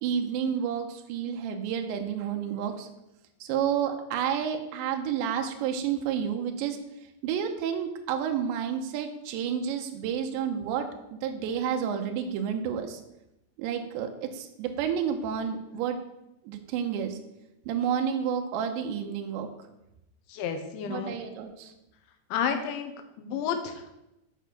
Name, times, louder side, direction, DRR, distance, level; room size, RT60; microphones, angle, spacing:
voice 1, 0.0-2.9 3.4-6.8 7.2-13.0 13.6-16.0 16.4-17.2 17.7-19.5 20.9-21.7, right 8 dB, 80° right, 4 dB, 3.1 m, -30 dB
voice 2, 20.3-21.1 22.3-22.9 23.2-23.8, left 7 dB, 85° left, 6 dB, 3.4 m, -30 dB
8.9 x 5.5 x 6.6 m, 0.88 s
omnidirectional pair, 5.2 m